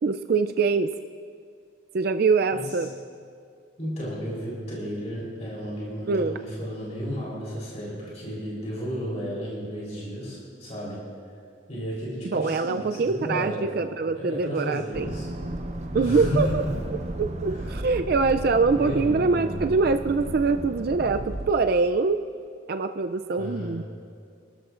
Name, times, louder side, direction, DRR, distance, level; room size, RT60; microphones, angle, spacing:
voice 1, 0.0-0.9 1.9-2.9 6.1-6.4 12.3-15.1 15.9-22.2 22.7-23.8, right 4 dB, 50° right, 8 dB, 0.4 m, -24 dB
voice 2, 3.8-11.0 11.7-13.7 14.1-15.3 15.9-16.9 17.5-17.7 18.6-19.3 23.4-23.8, equal, 35° left, -6 dB, 3.7 m, -33 dB
Accelerating revving vroom, 14.9-21.5, right 1 dB, 35° right, 0.8 m, -34 dB
28.0 x 13.0 x 2.5 m, 2.3 s
head